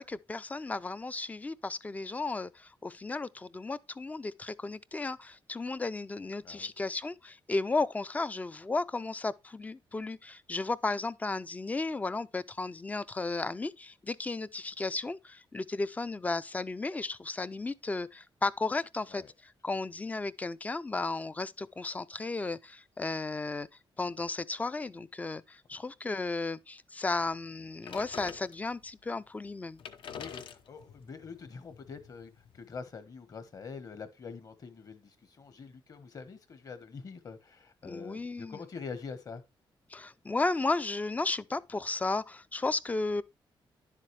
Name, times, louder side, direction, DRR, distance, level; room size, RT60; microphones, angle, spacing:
voice 1, 0.0-23.7 24.0-29.8 37.8-38.6 39.9-43.2, left 3 dB, 15° left, 0.4 m, -34 dB
sound 1, 27.8-28.9 29.5-29.6 29.7-32.8, left 7 dB, 65° left, 0.9 m, -46 dB
voice 2, 30.2-39.4, left 5 dB, 40° left, 1.3 m, -45 dB
11.0 x 7.5 x 3.3 m
wide cardioid pair, 175°, 9 cm